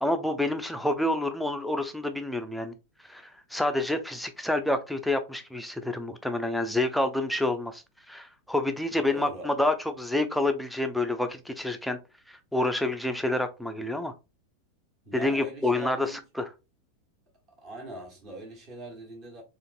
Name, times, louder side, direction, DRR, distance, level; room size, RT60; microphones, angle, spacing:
voice 1, 0.0-2.7 3.1-12.0 12.3-14.1 15.1-16.5, left 2 dB, ahead, 0.4 m, -28 dB
voice 2, 8.9-9.5 15.0-16.2 17.6-19.4, right 2 dB, 30° right, 1.3 m, -41 dB
3.9 x 2.5 x 2.5 m
figure-of-eight pair, 90°, 0 cm